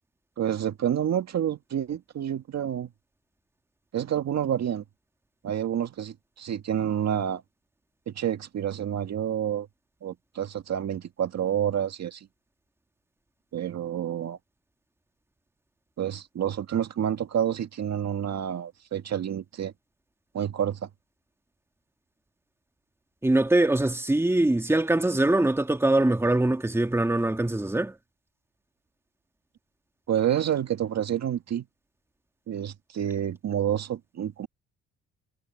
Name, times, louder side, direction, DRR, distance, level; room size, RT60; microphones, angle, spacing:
voice 1, 0.4-2.9 3.9-4.8 5.4-7.4 8.1-9.7 10.0-12.3 13.5-14.4 16.0-19.7 20.3-20.9 30.1-31.7 32.5-34.5, right 9 dB, 60° right, 2.1 m, -28 dB
voice 2, 23.2-27.9, right 2 dB, 10° right, 1.9 m, -23 dB
cardioid pair, 90°, 30 cm